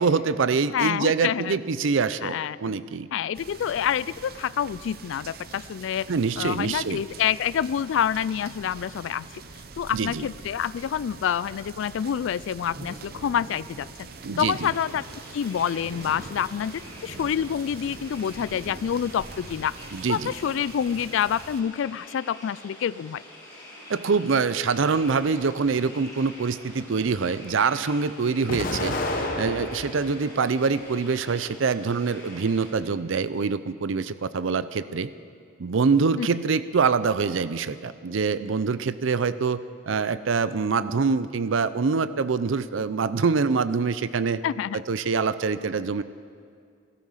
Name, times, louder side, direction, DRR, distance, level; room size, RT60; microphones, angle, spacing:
voice 1, 0.0-3.1 6.1-7.0 9.9-10.3 14.2-14.7 19.9-20.3 23.9-35.1 35.6-39.6 39.9-44.4 44.7-46.0, right 5 dB, 80° right, 15 dB, 0.5 m, -25 dB
voice 2, 0.7-1.6 2.2-2.8 3.1-9.4 9.8-14.1 14.4-15.0 15.3-19.7 20.1-23.2 36.2-36.3 44.4-44.8, left 8 dB, 75° left, 19 dB, 0.3 m, -27 dB
sound 1, 3.3-21.6, right 3 dB, 50° right, 0.8 m, -43 dB
sound 2, 14.4-32.7, left 1 dB, 20° left, 5.4 m, -46 dB
Explosion, 28.5-30.1 30.7-31.6, left 2 dB, 45° left, 1.2 m, -30 dB
17.5 x 13.0 x 5.7 m, 2.2 s
head